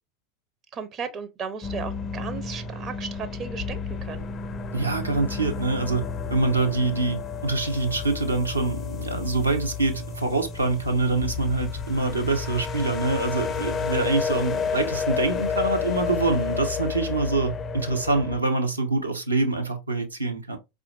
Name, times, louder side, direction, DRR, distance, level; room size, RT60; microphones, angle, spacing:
voice 1, 0.7-4.2, right 6 dB, 35° right, 0.5 m, -35 dB
sound 1, 1.6-18.4, left 5 dB, 30° left, 0.4 m, -31 dB
voice 2, 4.7-6.0 6.3-20.6, right 3 dB, 90° right, 0.7 m, -25 dB
4.4 x 2.4 x 2.3 m
figure-of-eight pair, 85°, 0 cm